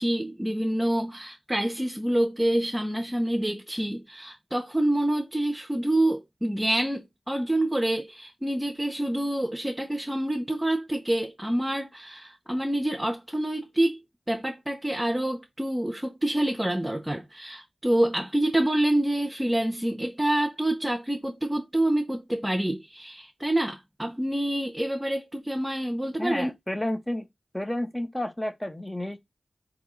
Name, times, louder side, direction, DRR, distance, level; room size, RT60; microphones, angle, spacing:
voice 1, 0.0-14.0 14.3-26.5, right 1 dB, 15° right, 1.0 m, -27 dB
voice 2, 26.2-27.3 27.5-29.2, left 1 dB, 15° left, 1.0 m, -31 dB
3.8 x 3.0 x 3.8 m
cardioid pair, 45°, 0 cm